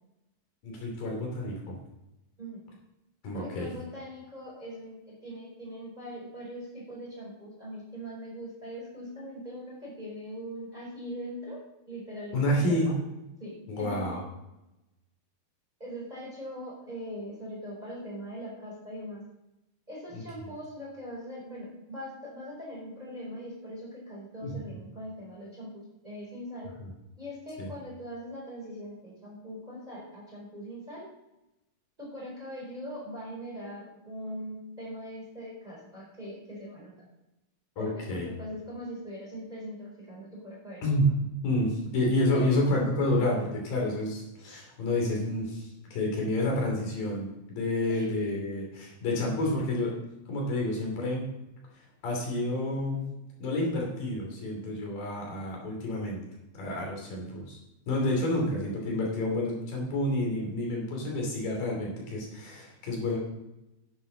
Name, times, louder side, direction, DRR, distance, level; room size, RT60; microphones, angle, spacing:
voice 1, 0.6-1.7 3.2-3.7 12.3-12.9 13.7-14.2 20.1-20.2 24.4-24.6 26.8-26.9 27.6-27.7 37.8-38.3 40.8-41.1 41.4-50.0 50.3-51.3 52.0-53.0 53.4-56.2 56.5-57.6 57.9-63.2, left 1 dB, 65° left, -1 dB, 4.5 m, -29 dB
voice 2, 3.3-12.9 13.4-14.2 15.8-19.2 19.9-26.7 27.2-31.1 32.0-36.9 37.8-41.1 42.3-42.5 47.9-48.1, equal, 10° right, -4 dB, 4.2 m, -41 dB
11.0 x 10.0 x 4.0 m, 0.93 s
omnidirectional pair, 4.2 m